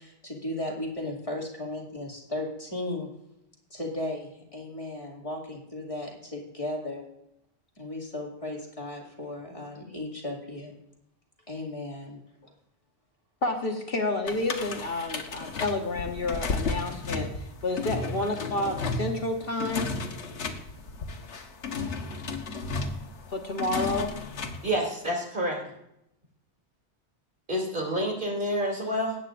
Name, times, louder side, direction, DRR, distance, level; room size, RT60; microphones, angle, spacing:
voice 1, 0.0-3.1 3.7-7.0 7.8-10.7 11.5-12.5, left 1 dB, 30° left, -2 dB, 2.3 m, -36 dB
voice 2, 13.4-19.9 23.3-24.2, left 2 dB, 55° left, 3 dB, 1.3 m, -30 dB
sound 1, 14.3-24.7, left 3 dB, 80° left, 1.3 m, -33 dB
voice 3, 24.6-25.6 27.5-29.2, equal, 50° right, -1 dB, 3.0 m, -28 dB
19.5 x 9.1 x 2.5 m, 0.81 s
omnidirectional pair, 1.2 m